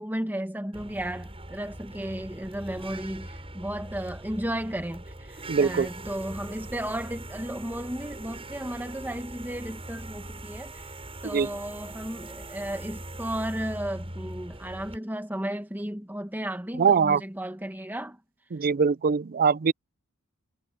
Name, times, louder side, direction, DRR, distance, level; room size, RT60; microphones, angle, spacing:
voice 1, 0.0-10.8 11.2-18.2, right 1 dB, 10° right, 1.9 m, -34 dB
sound 1, 0.7-15.0, right 1 dB, 25° right, 7.8 m, -41 dB
voice 2, 5.5-5.9 11.2-11.5 16.8-17.2 18.5-19.7, right 6 dB, 40° right, 0.4 m, -22 dB
head